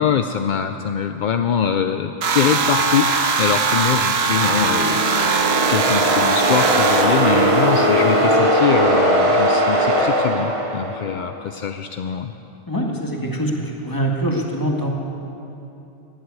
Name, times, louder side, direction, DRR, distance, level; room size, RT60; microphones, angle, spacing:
voice 1, 0.0-3.1 3.4-12.3, left 7 dB, 60° left, 7 dB, 0.5 m, -23 dB
sound 1, 2.2-8.4, right 4 dB, 55° right, 1.1 m, -21 dB
sound 2, 4.2-11.2, right 1 dB, 25° right, 1.3 m, -19 dB
voice 2, 12.7-14.9, right 1 dB, 15° left, 0 dB, 1.7 m, -23 dB
19.5 x 7.9 x 8.3 m, 2.9 s
omnidirectional pair, 1.3 m